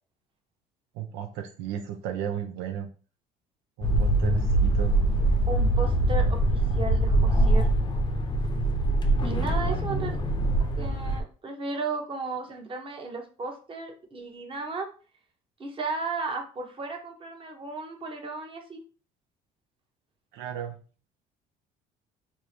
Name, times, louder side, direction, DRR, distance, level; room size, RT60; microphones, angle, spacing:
voice 1, 0.9-2.9 3.8-5.0 9.6-10.1 20.3-20.8, right 9 dB, 80° right, 4 dB, 0.5 m, -34 dB
sound 1, 3.8-11.2, right 1 dB, 25° left, 0.6 m, -23 dB
voice 2, 5.5-7.7 9.2-10.2 10.8-14.9 15.6-18.8, right 3 dB, 30° right, 2 dB, 1.0 m, -34 dB
4.3 x 2.1 x 3.2 m, 0.36 s
supercardioid pair, 95°, 18 cm